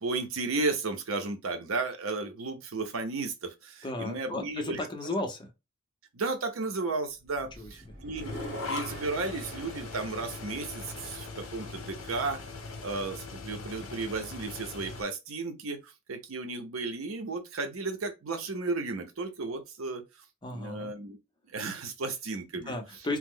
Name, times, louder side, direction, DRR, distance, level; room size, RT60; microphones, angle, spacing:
voice 1, 0.0-4.8 6.1-8.3 8.7-12.4 12.8-20.0 20.5-21.2 21.5-22.8, right 3 dB, 80° right, 0.7 m, -34 dB
voice 2, 3.8-5.5 7.6-7.7 20.4-20.9 22.7-23.2, left 2 dB, 20° left, 0.7 m, -34 dB
sound 1, 7.2-11.5, right 2 dB, 50° right, 1.2 m, -47 dB
sound 2, 8.2-15.0, left 3 dB, 80° left, 0.8 m, -40 dB
3.0 x 2.0 x 3.6 m
head